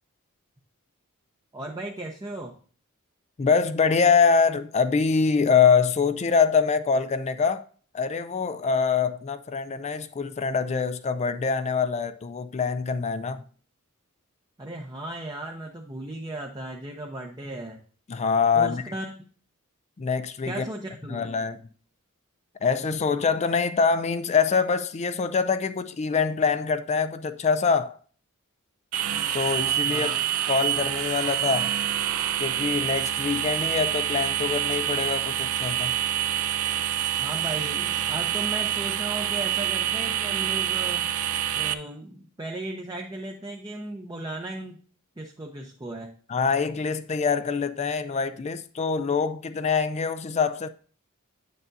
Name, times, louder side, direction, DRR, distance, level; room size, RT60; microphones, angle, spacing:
voice 1, 1.5-2.5 14.6-17.8 18.5-19.2 20.4-21.3 29.9-30.2 37.2-41.0 41.5-44.8 45.2-46.1, right 1 dB, 20° right, 0.7 m, -36 dB
voice 2, 3.4-7.6 7.9-13.4 18.1-18.8 20.0-20.7 21.1-21.6 22.6-28.0 29.3-30.1 30.5-31.7 32.4-35.9 46.3-50.7, left 5 dB, 30° left, 0.4 m, -24 dB
sound 1, 28.9-41.7, right 11 dB, 75° right, 0.5 m, -27 dB
8.8 x 6.8 x 2.6 m
head